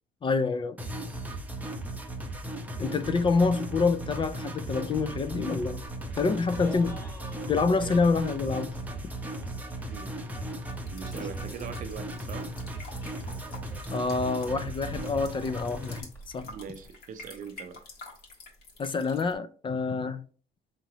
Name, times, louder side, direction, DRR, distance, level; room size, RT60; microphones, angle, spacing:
voice 1, 0.2-0.8 2.8-5.8 6.2-7.0 7.5-8.7 13.9-16.1 16.3-16.5 18.8-20.2, left 4 dB, 30° left, 0.4 m, -27 dB
sound 1, 0.8-16.0, right 1 dB, 10° right, 0.7 m, -37 dB
sound 2, 3.6-16.9, equal, 15° left, 1.7 m, -50 dB
voice 2, 6.5-7.0 7.8-8.1 9.9-10.2 10.9-12.5 16.4-17.8, right 7 dB, 50° right, 0.6 m, -42 dB
sound 3, 10.6-19.3, left 2 dB, 70° left, 1.4 m, -49 dB
4.8 x 2.9 x 2.8 m
cardioid pair, 110°, 17 cm